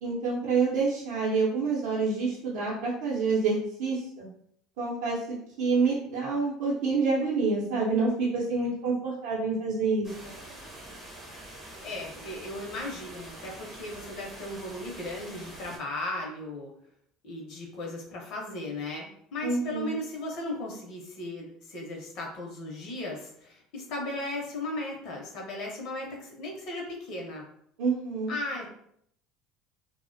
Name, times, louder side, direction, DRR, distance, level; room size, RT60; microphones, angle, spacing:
voice 1, 0.0-4.3 4.8-10.4 19.4-20.0 27.8-28.3, right 4 dB, 75° right, -6 dB, 0.6 m, -27 dB
sound 1, 10.0-15.8, right 1 dB, 10° right, 0.5 m, -45 dB
voice 2, 11.8-16.7 17.2-27.4 28.3-28.7, left 1 dB, 50° left, -1 dB, 0.6 m, -36 dB
2.4 x 2.0 x 2.5 m, 0.68 s
cardioid pair, 165°, 0 cm